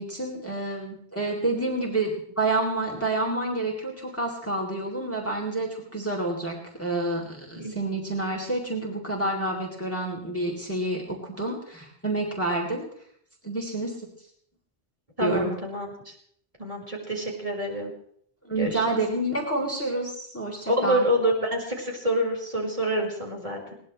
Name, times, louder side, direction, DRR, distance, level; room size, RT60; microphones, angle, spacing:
voice 1, 0.0-12.8 13.4-14.1 15.2-15.5 18.4-21.1, right 2 dB, 15° left, -1 dB, 3.4 m, -28 dB
voice 2, 15.2-16.1 16.6-17.9 18.6-18.8 20.7-23.7, equal, 35° right, -2 dB, 5.0 m, -27 dB
21.5 x 19.5 x 3.3 m, 0.65 s
omnidirectional pair, 1.1 m